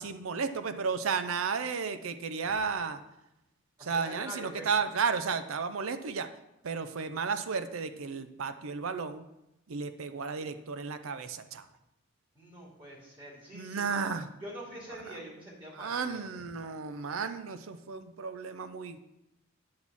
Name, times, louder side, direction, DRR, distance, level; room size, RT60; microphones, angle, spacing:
voice 1, 0.0-3.0 3.8-6.3 6.6-9.3 9.7-11.7 13.5-14.3 14.9-15.2 15.7-19.0, right 5 dB, 85° right, 10 dB, 0.6 m, -33 dB
voice 2, 3.8-4.7 12.3-14.0 14.4-16.3, equal, 25° right, -3 dB, 2.5 m, -45 dB
9.5 x 4.1 x 7.2 m, 0.88 s
head